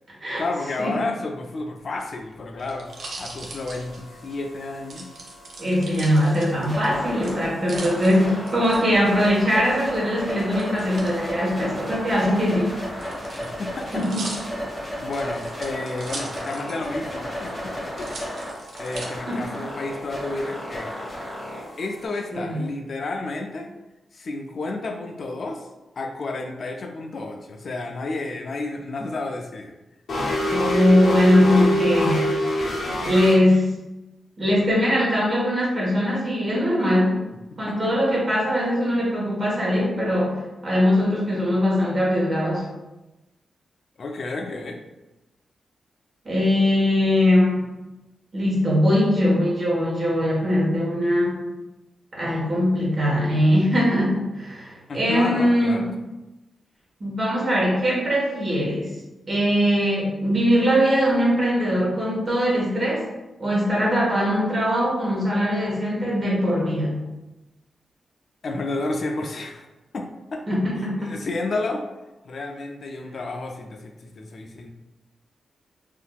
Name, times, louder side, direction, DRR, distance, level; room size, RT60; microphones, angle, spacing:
voice 1, 0.4-5.1 13.4-14.0 15.0-18.1 18.3-21.1 21.8-23.7 24.1-25.7 26.0-29.7 37.5-37.9 44.0-44.8 54.9-55.9 68.4-69.7 69.9-70.4 70.8-71.8 72.2-74.7, left 2 dB, 50° left, 4 dB, 0.3 m, -31 dB
sound 1, 1.8-4.4 4.9-6.9 7.2-8.8 10.6-11.1 12.1-17.0 17.3-17.4 17.9-19.1 19.7-20.2, right 2 dB, 70° right, 0.6 m, -39 dB
sound 2, 2.8-22.0, equal, 15° left, 1.1 m, -34 dB
voice 2, 5.6-12.8 13.9-14.3 19.3-19.4 22.3-22.6 30.5-32.3 32.6-33.7 34.4-37.2 37.6-42.6 46.2-47.6 48.3-51.4 52.1-55.8 57.0-58.9 59.3-63.1 63.4-67.0 70.5-71.1, equal, 40° right, -5 dB, 1.1 m, -21 dB
sound 3, 30.1-33.3, equal, 75° left, 0.7 m, -24 dB
3.5 x 2.7 x 2.3 m, 1.0 s
wide cardioid pair, 125°, 0 cm